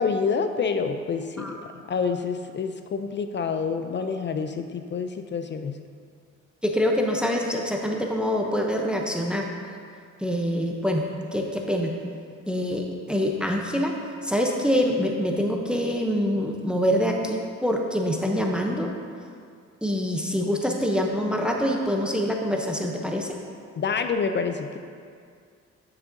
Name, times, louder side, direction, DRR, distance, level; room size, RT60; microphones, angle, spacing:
voice 1, 0.0-1.5 1.9-5.8 23.8-24.8, left 5 dB, 40° left, 8 dB, 0.4 m, -27 dB
voice 2, 6.6-9.5 10.2-11.0 11.3-11.9 12.5-13.9 14.2-18.9 19.8-23.4, equal, 5° right, 1 dB, 0.7 m, -25 dB
9.9 x 6.3 x 2.6 m, 2.2 s
cardioid pair, 90°, 30 cm